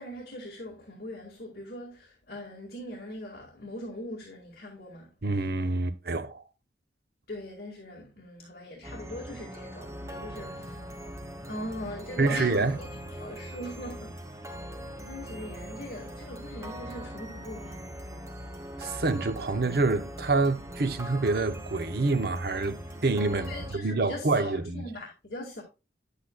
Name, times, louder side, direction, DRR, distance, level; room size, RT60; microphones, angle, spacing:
voice 1, 0.0-5.1 7.3-10.8 11.5-12.7 13.2-14.2 15.0-17.8 23.5-25.6, left 1 dB, 60° left, 2.0 m, -41 dB
voice 2, 5.2-6.4 12.2-12.8 18.8-22.8 23.0-24.8, right 3 dB, 60° right, 0.9 m, -27 dB
sound 1, 8.8-23.7, equal, 15° right, 1.2 m, -41 dB
9.9 x 8.3 x 2.3 m
head